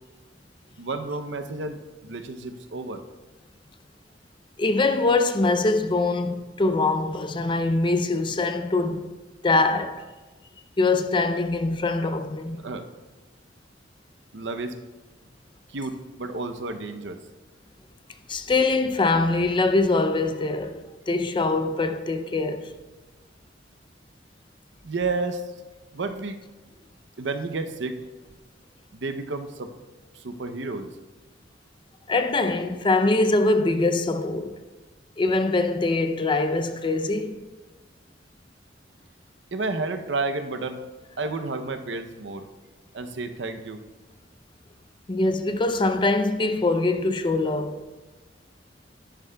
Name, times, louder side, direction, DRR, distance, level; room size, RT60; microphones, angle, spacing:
voice 1, 0.8-3.0 12.6-12.9 14.3-14.8 15.7-17.2 24.8-25.4 25.9-26.4 27.2-28.0 28.9-29.7 30.1-30.9 39.5-40.8 41.2-42.5 42.9-43.8, right 3 dB, 75° right, 0.7 m, -31 dB
voice 2, 4.6-9.1 9.4-10.0 10.8-12.6 18.3-20.8 21.1-22.7 32.1-34.6 35.2-37.4 45.1-47.8, left 3 dB, 25° left, 0.5 m, -23 dB
11.0 x 10.5 x 2.3 m
head